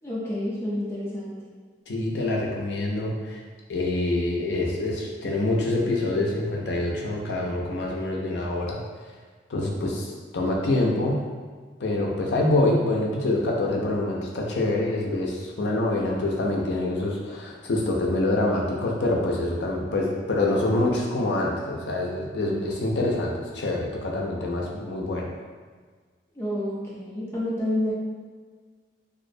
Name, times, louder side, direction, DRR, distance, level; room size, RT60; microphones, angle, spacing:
voice 1, 0.0-1.3 26.3-27.9, left 1 dB, 15° left, -7 dB, 0.5 m, -29 dB
voice 2, 1.9-3.4 3.7-8.8 9.5-11.2 11.8-25.3, left 2 dB, 85° left, -1 dB, 0.4 m, -26 dB
2.5 x 2.0 x 2.5 m, 1.5 s
head